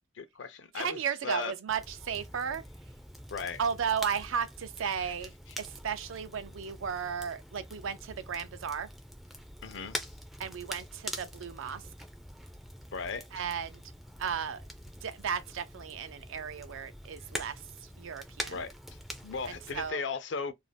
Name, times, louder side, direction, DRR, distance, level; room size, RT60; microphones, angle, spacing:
voice 1, 0.2-1.5 3.3-3.6 5.0-5.1 9.6-10.1 12.9-13.2 18.5-18.7 19.2-20.5, left 5 dB, 65° left, 0.5 m, -36 dB
voice 2, 0.7-2.6 3.6-8.9 10.4-11.8 13.3-13.8 14.2-14.6 15.0-17.6 18.0-18.6 19.5-20.0, right 7 dB, 75° right, 0.4 m, -34 dB
Crackle, 1.7-19.9, equal, ahead, 0.3 m, -45 dB
2.5 x 2.0 x 3.2 m
head